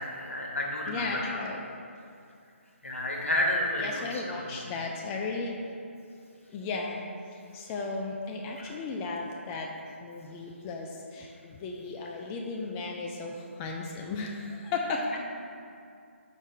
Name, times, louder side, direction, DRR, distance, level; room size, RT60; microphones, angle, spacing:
voice 1, 0.0-1.4 2.8-4.4 8.6-8.7, left 1 dB, 80° left, -1 dB, 1.2 m, -31 dB
voice 2, 0.9-1.6 3.8-5.6 6.5-7.1 7.3-9.7 10.0-15.2, left 3 dB, 15° left, 0 dB, 0.3 m, -35 dB
5.3 x 4.7 x 3.8 m, 2.4 s
figure-of-eight pair, 145°, 7 cm